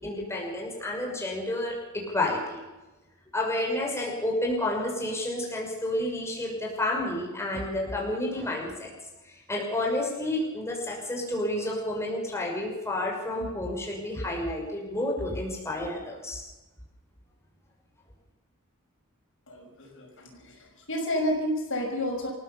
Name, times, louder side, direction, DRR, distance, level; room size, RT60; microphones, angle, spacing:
voice 1, 0.0-2.6 3.3-8.9 9.3-16.4, left 1 dB, 15° left, -2 dB, 5.9 m, -30 dB
voice 2, 19.5-20.5 20.9-22.3, left 1 dB, 65° left, 1 dB, 6.5 m, -30 dB
27.0 x 16.0 x 7.0 m, 1.1 s
head